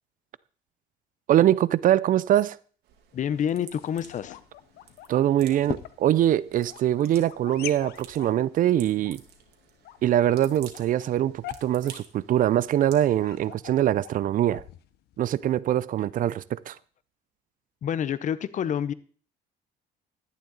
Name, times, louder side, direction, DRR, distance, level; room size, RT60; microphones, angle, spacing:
voice 1, 1.3-2.6 5.1-9.2 10.0-14.6 15.2-16.7, right 12 dB, 55° right, 0.5 m, -23 dB
sound 1, 2.8-13.5, right 8 dB, 80° right, 2.2 m, -52 dB
voice 2, 3.1-4.4 17.8-18.9, left 9 dB, 45° left, 0.8 m, -28 dB
sound 2, 3.2-15.6, left 13 dB, 80° left, 0.9 m, -44 dB
11.5 x 10.5 x 4.0 m
cardioid pair, 110°, 17 cm